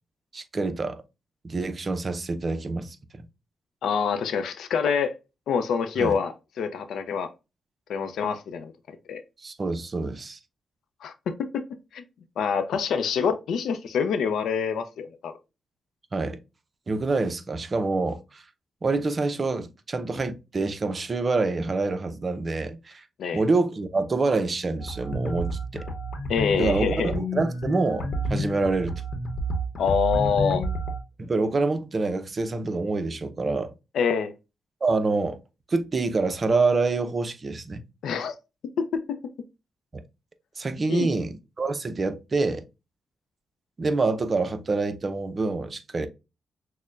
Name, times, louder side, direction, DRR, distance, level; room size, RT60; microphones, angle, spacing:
voice 1, 0.3-1.0 1.4-3.3 6.0-6.2 9.4-10.4 16.1-16.4 16.9-18.4 18.8-23.0 23.3-25.8 26.6-29.0 31.2-33.7 34.8-35.4 35.7-37.8 39.9-40.0 40.6-42.6 43.8-46.1, right 3 dB, 40° right, 0.6 m, -26 dB
voice 2, 3.8-5.1 5.5-7.3 7.9-9.2 11.0-11.6 11.9-12.0 12.4-15.3 23.2-23.4 26.3-27.1 29.8-30.6 33.9-34.3 38.0-38.3 38.8-39.2 40.9-41.1, left 6 dB, 80° left, 0.5 m, -26 dB
sound 1, 24.8-31.0, right 1 dB, 60° left, 0.9 m, -30 dB
6.3 x 2.1 x 2.4 m
cardioid pair, 70°, 0 cm